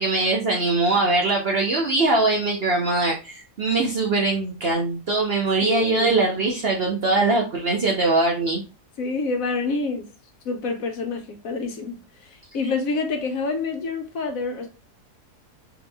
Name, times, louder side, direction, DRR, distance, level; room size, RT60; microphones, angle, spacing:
voice 1, 0.0-8.6, right 3 dB, 55° right, 0.7 m, -22 dB
voice 2, 5.6-6.2 9.0-10.1 10.4-14.7, left 3 dB, 65° left, 1.1 m, -27 dB
3.5 x 2.9 x 3.4 m
omnidirectional pair, 1.7 m